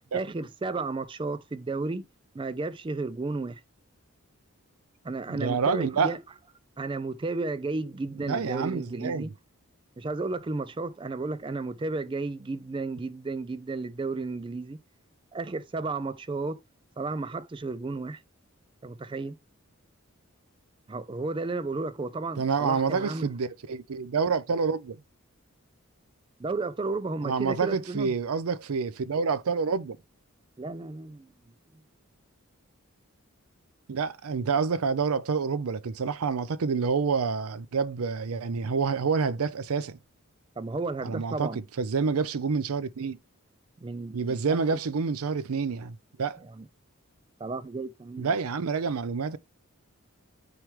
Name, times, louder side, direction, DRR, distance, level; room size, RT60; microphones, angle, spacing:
voice 1, 0.1-2.1 2.3-3.6 5.0-6.2 6.8-9.3 10.0-14.8 15.3-16.6 17.0-18.2 18.8-19.4 20.9-23.3 26.4-28.1 30.6-31.3 40.6-41.6 43.8-44.8 46.4-46.7 47.4-48.3, right 3 dB, 25° right, 0.3 m, -33 dB
voice 2, 5.3-6.1 8.2-9.3 22.4-25.0 27.2-30.0 33.9-40.0 41.0-43.2 44.1-46.4 48.2-49.4, right 5 dB, 80° right, 0.5 m, -28 dB
9.4 x 3.2 x 3.2 m
head